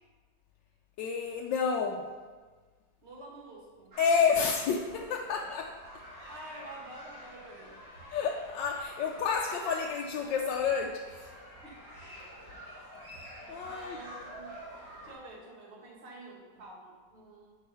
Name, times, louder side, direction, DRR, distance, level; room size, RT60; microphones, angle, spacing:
voice 1, 1.0-2.0 4.0-5.7 8.1-11.3 13.5-14.0, left 6 dB, 85° left, 0 dB, 1.3 m, -29 dB
voice 2, 3.0-4.0 5.3-5.6 6.3-7.8 11.6-12.1 12.4-12.8 13.6-14.6 15.0-17.6, right 1 dB, 40° right, -2 dB, 1.7 m, -48 dB
sound 1, 3.9-15.1, equal, 75° right, 2.9 m, -48 dB
8.8 x 4.7 x 5.5 m, 1.4 s
omnidirectional pair, 2.0 m